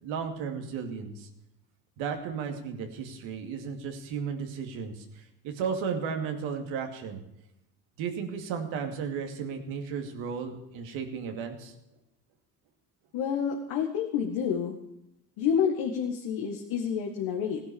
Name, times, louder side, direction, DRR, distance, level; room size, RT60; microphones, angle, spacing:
voice 1, 0.0-1.3 2.0-7.2 8.0-11.7, right 6 dB, 75° right, 5 dB, 2.6 m, -34 dB
voice 2, 13.1-14.8 15.4-17.6, left 7 dB, 75° left, 2 dB, 2.1 m, -28 dB
16.5 x 10.5 x 7.1 m, 0.85 s
supercardioid pair, 70°, 47 cm